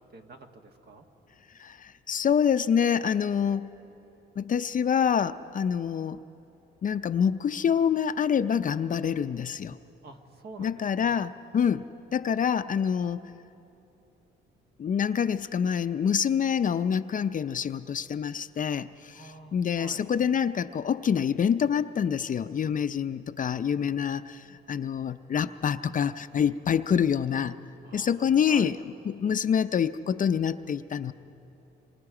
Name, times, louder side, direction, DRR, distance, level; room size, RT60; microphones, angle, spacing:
voice 1, 0.1-1.1 10.0-11.1 19.1-20.1 27.8-28.7, right 3 dB, 55° right, 4 dB, 1.7 m, -48 dB
voice 2, 1.6-3.7 4.4-6.2 6.8-9.8 10.6-11.9 12.1-13.2 14.8-27.6 27.9-28.8 29.1-31.1, left 7 dB, 40° left, 11 dB, 0.5 m, -26 dB
26.5 x 25.0 x 4.9 m, 2.9 s
cardioid pair, 90°, 20 cm